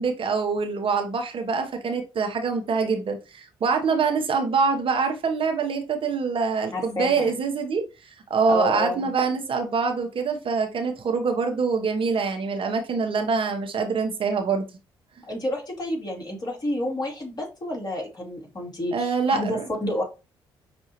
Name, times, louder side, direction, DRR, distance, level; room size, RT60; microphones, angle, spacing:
voice 1, 0.0-14.6 18.9-19.6, right 5 dB, 50° right, 0.9 m, -25 dB
voice 2, 6.7-7.3 8.5-9.1 15.3-20.0, left 1 dB, 35° left, 2.6 m, -29 dB
5.8 x 2.7 x 3.0 m
hypercardioid pair, 50°, 12 cm